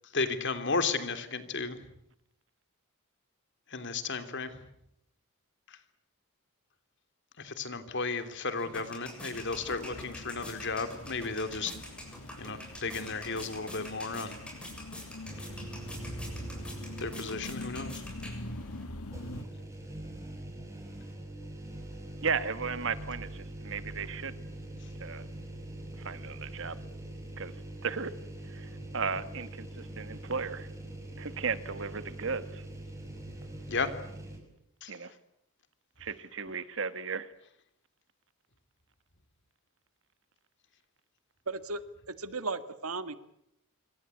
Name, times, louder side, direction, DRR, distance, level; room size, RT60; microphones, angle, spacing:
voice 1, 0.1-1.8 3.7-4.5 7.4-11.7 12.4-14.4 17.0-18.0 33.7-33.9 34.8-34.9, left 4 dB, 55° left, 10 dB, 3.1 m, -34 dB
sound 1, 8.1-18.8, left 1 dB, 5° left, 7.3 m, -47 dB
sound 2, 9.3-19.4, left 1 dB, 90° left, 2.2 m, -44 dB
sound 3, 15.2-17.4 17.8-17.9 19.1-34.4, right 1 dB, 15° right, 6.9 m, -43 dB
voice 2, 22.2-24.4 25.0-25.3 26.0-26.8 27.4-27.5 27.8-28.1 28.5-30.7 31.2-32.6 34.9-35.1 36.0-37.3, right 5 dB, 60° right, 13 dB, 1.6 m, -35 dB
voice 3, 41.5-41.8 42.1-43.1, right 3 dB, 75° right, 11 dB, 1.9 m, -35 dB
26.5 x 25.0 x 8.5 m, 0.79 s
head